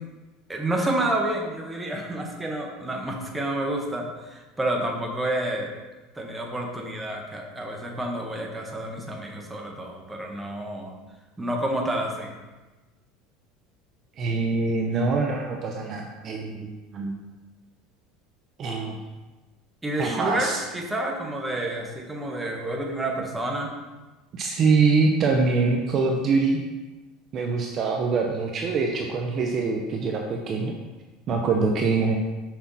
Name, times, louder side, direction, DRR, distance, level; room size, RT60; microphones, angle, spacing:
voice 1, 0.5-5.7 6.1-10.9 11.4-12.3 19.8-23.7, right 1 dB, 10° right, 0 dB, 1.1 m, -29 dB
voice 2, 14.2-17.2 18.6-19.0 20.0-20.6 24.3-26.6 27.3-30.8 31.3-32.2, right 4 dB, 35° right, 2 dB, 0.7 m, -24 dB
6.0 x 5.8 x 4.1 m, 1.2 s
cardioid pair, 145°, 0 cm